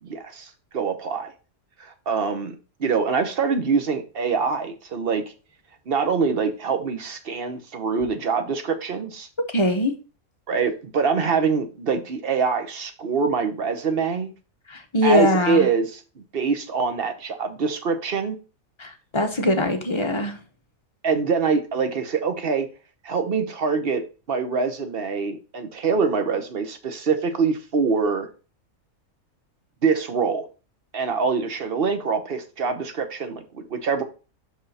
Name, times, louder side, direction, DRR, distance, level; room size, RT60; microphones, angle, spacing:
voice 1, 0.0-1.3 1.8-5.2 5.9-9.3 10.5-14.3 15.0-18.4 21.0-22.7 23.0-28.3 29.8-30.5 30.9-34.0, right 5 dB, 45° right, 1.0 m, -24 dB
voice 2, 9.5-9.9 14.7-15.7 18.8-20.4, left 1 dB, 25° left, 0.9 m, -22 dB
5.6 x 5.6 x 4.1 m
omnidirectional pair, 1.5 m